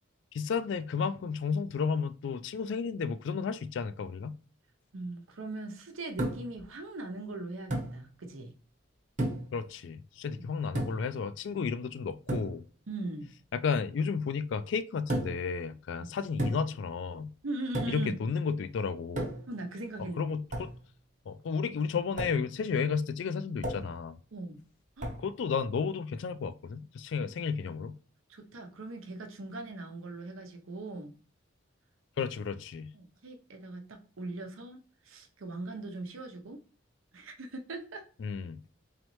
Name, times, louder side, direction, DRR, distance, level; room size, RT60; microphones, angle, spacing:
voice 1, 0.3-4.3 9.5-12.6 13.5-17.3 17.9-19.3 20.2-20.7 21.3-24.2 25.2-28.0 32.2-32.9 38.2-38.6, left 5 dB, 65° left, 0.3 m, -32 dB
voice 2, 4.9-8.5 12.9-13.3 17.4-18.2 19.5-20.2 24.3-24.6 25.0-25.1 28.3-31.1 32.9-34.8 35.0-36.6 37.1-38.0, right 2 dB, 90° right, 0.8 m, -40 dB
sound 1, 6.2-6.6 7.7-8.0 9.2-9.6 10.8-11.1 12.3-12.6 15.1-15.5 16.4-16.8 17.7-18.1 19.2-19.6 20.5-20.8 22.2-22.4 23.6-24.0 25.0-25.3, right 1 dB, 35° right, 0.9 m, -33 dB
4.0 x 3.2 x 3.1 m
head